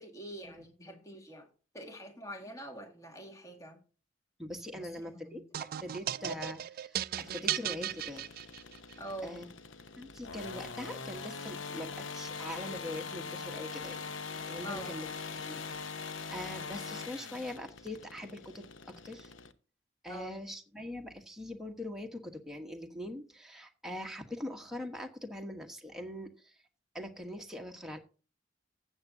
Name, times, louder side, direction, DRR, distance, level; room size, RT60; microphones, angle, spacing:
voice 1, 0.0-1.5 1.7-3.8 4.7-5.4 9.0-9.5 14.6-15.0 20.1-20.4, right 1 dB, 15° left, 1.9 m, -45 dB
voice 2, 4.4-5.4 5.8-8.2 9.2-9.5 10.0-14.0 14.5-15.1 15.4-19.3 20.0-26.5 26.9-28.0, left 1 dB, 5° right, 1.2 m, -42 dB
sound 1, 5.5-8.9, right 11 dB, 50° right, 0.3 m, -36 dB
sound 2, 7.2-19.5, left 5 dB, 85° left, 0.8 m, -43 dB
15.5 x 7.2 x 2.7 m
head